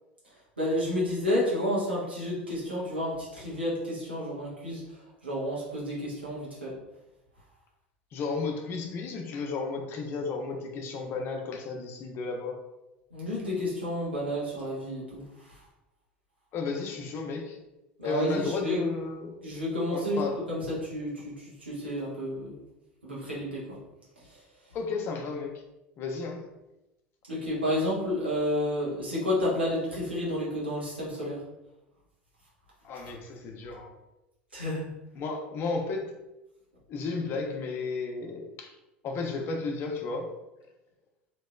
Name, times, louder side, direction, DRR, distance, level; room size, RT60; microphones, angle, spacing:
voice 1, 0.6-6.7 13.1-15.6 18.0-18.8 19.4-20.2 20.5-22.5 23.0-23.8 24.2-24.4 27.3-31.4 34.5-34.9, left 1 dB, 90° right, -6 dB, 1.1 m, -31 dB
voice 2, 8.1-12.6 16.5-17.6 18.0-19.4 19.9-20.4 24.7-25.5 26.0-26.4 32.8-34.0 35.1-36.1 36.9-38.8 39.0-40.3, left 4 dB, 45° left, 3 dB, 0.6 m, -33 dB
3.0 x 2.9 x 2.3 m, 0.95 s
figure-of-eight pair, 75°, 6 cm